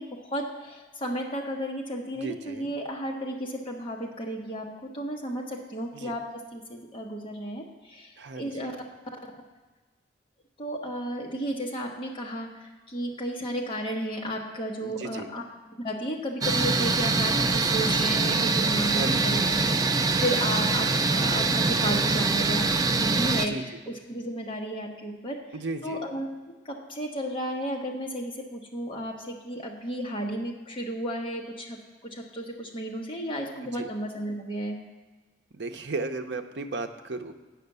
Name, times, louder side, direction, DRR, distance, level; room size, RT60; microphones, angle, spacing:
voice 1, 0.0-4.7 4.9-8.7 10.6-15.4 15.8-25.4 25.8-34.8, equal, 25° left, -1 dB, 1.3 m, -33 dB
voice 2, 2.1-2.7 5.9-6.1 8.2-8.7 14.8-15.3 18.9-19.4 23.3-23.8 25.5-26.0 33.7-33.9 35.5-37.3, right 2 dB, 70° right, 7 dB, 0.7 m, -35 dB
sound 1, 16.4-23.5, right 3 dB, 20° right, 0.4 m, -24 dB
9.4 x 5.9 x 6.7 m, 1.3 s
head